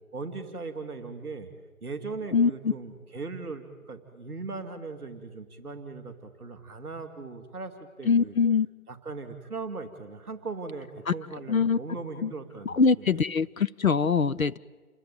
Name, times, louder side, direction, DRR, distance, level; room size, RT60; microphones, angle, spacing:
voice 1, 0.1-1.5 1.8-8.3 8.9-13.2, right 3 dB, 5° right, -12 dB, 1.4 m, -39 dB
voice 2, 8.1-8.7 11.5-11.8 12.2-12.3 12.7-14.6, left 5 dB, 70° left, 16 dB, 0.8 m, -23 dB
29.5 x 21.0 x 8.8 m, 1.3 s
figure-of-eight pair, 170°, 44 cm